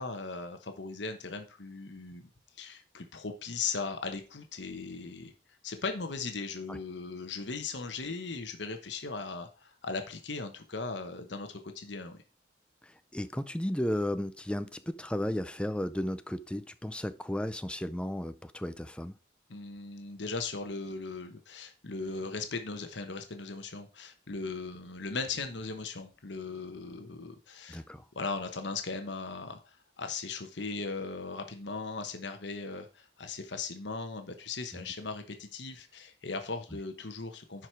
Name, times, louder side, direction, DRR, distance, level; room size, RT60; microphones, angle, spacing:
voice 1, 0.0-2.3 2.6-5.3 5.6-12.2 19.5-27.8 28.1-37.7, left 4 dB, 75° left, 1.1 m, -38 dB
voice 2, 12.8-19.1 27.7-28.0 34.7-34.9, left 1 dB, 5° left, 0.5 m, -34 dB
10.5 x 4.9 x 4.5 m
head